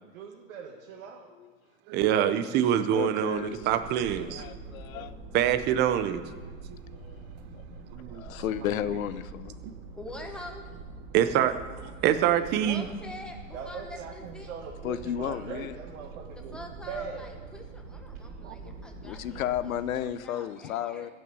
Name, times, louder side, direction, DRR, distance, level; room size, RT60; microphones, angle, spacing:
voice 1, 0.1-1.3 13.5-17.3, right 6 dB, 75° right, -1 dB, 1.7 m, -41 dB
voice 2, 1.9-4.5 5.0-5.1 5.3-6.2 6.7-6.8 7.9-8.2 11.1-12.8 18.4-18.6, right 10 dB, 25° right, 10 dB, 0.6 m, -25 dB
voice 3, 2.9-3.7 4.3-5.2 6.9-7.3 7.5-7.8 8.1-9.6 14.8-15.8 19.0-21.1, left 10 dB, 90° left, 14 dB, 0.8 m, -33 dB
sound 1, 3.1-20.1, right 3 dB, 45° right, 2.0 m, -45 dB
voice 4, 10.0-10.8 12.6-14.5 16.3-21.1, left 1 dB, ahead, 2 dB, 1.2 m, -45 dB
16.0 x 6.2 x 7.0 m, 1.5 s
supercardioid pair, 150°, 40 cm